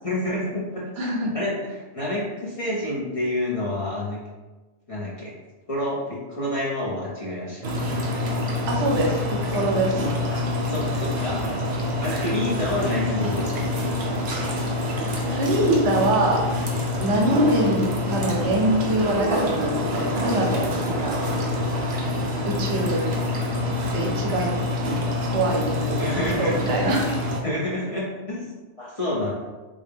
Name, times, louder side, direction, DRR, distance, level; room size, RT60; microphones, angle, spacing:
voice 1, 0.0-1.1 1.3-4.2 4.9-5.3 5.7-7.9 10.3-11.4 12.0-13.9 20.7-20.8 25.8-27.0 27.4-28.5 28.8-29.3, left 1 dB, 40° left, -6 dB, 0.6 m, -28 dB
voice 2, 1.0-1.3 8.7-10.0 15.3-16.4 17.0-21.2 22.4-23.1 23.9-24.6 25.2-25.7 26.4-27.1, right 1 dB, 80° right, 1 dB, 1.0 m, -24 dB
sound 1, 7.6-27.4, left 1 dB, 50° right, 0.5 m, -26 dB
3.4 x 2.2 x 3.4 m, 1.2 s
omnidirectional pair, 1.2 m